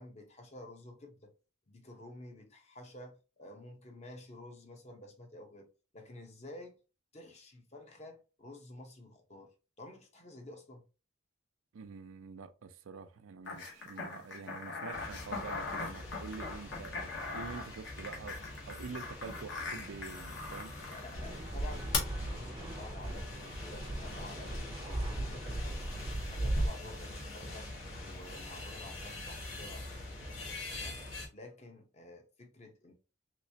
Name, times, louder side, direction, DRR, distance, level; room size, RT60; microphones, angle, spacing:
voice 1, 0.0-1.3 1.7-5.7 5.9-6.8 7.1-9.5 9.8-10.8 20.7-27.7 28.0-31.0 31.3-32.9, left 1 dB, 35° left, 0.7 m, -51 dB
voice 2, 11.7-20.7, right 5 dB, 90° right, 0.4 m, -47 dB
sound 1, 13.5-21.1 21.9-22.0, left 4 dB, 60° left, 1.0 m, -40 dB
sound 2, 14.9-31.3, left 1 dB, 80° left, 1.2 m, -45 dB
Fixed-wing aircraft airplane, 21.2-26.7, right 1 dB, 20° right, 0.5 m, -37 dB
3.2 x 3.0 x 2.7 m
head